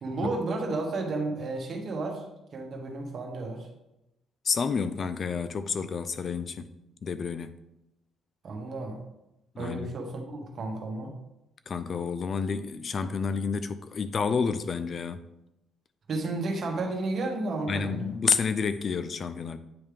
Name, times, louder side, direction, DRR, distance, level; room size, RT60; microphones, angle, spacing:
voice 1, 0.0-2.2 2.5-3.7 8.4-9.0 9.6-11.1 16.1-18.2, right 2 dB, 50° right, 2 dB, 1.3 m, -32 dB
voice 2, 4.4-6.7 7.0-7.5 9.6-9.9 11.7-15.3 17.7-19.6, left 5 dB, 40° left, 12 dB, 0.3 m, -29 dB
8.7 x 3.2 x 3.4 m, 0.90 s
cardioid pair, 110°, 0 cm